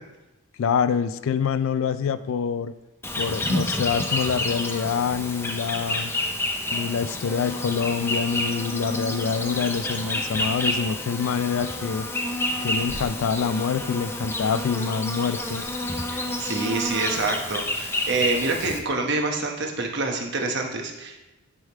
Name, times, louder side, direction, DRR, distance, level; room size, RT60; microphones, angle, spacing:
voice 1, 0.6-2.7 3.2-6.1 6.7-12.1 12.6-15.7, left 6 dB, 65° left, 13 dB, 0.3 m, -26 dB
Insect, 3.0-18.8, left 1 dB, 10° left, 0.5 m, -29 dB
voice 2, 16.4-21.2, right 3 dB, 55° right, 2 dB, 1.0 m, -26 dB
9.7 x 3.5 x 4.6 m, 0.99 s
head